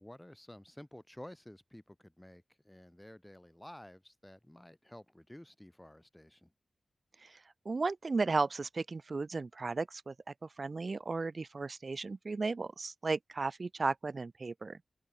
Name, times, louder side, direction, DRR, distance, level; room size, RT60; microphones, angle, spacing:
voice 1, 0.0-6.5, left 1 dB, 10° left, 0.6 m, -52 dB
voice 2, 7.7-10.1 10.4-14.8, right 3 dB, 45° right, 0.4 m, -35 dB
wide cardioid pair, 110°, 0 cm